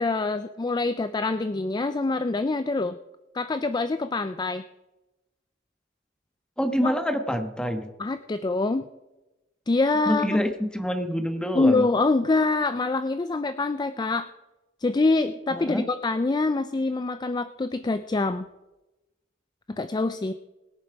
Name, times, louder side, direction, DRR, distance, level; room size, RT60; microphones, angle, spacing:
voice 1, 0.0-3.0 3.3-4.6 6.8-6.9 8.0-8.9 9.7-10.4 11.5-14.3 14.8-18.5 19.7-20.3, left 3 dB, 20° left, 11 dB, 0.4 m, -25 dB
voice 2, 6.6-7.9 10.1-11.8 15.5-15.9, equal, 5° left, 6 dB, 1.3 m, -26 dB
21.0 x 7.3 x 4.8 m, 1.0 s
head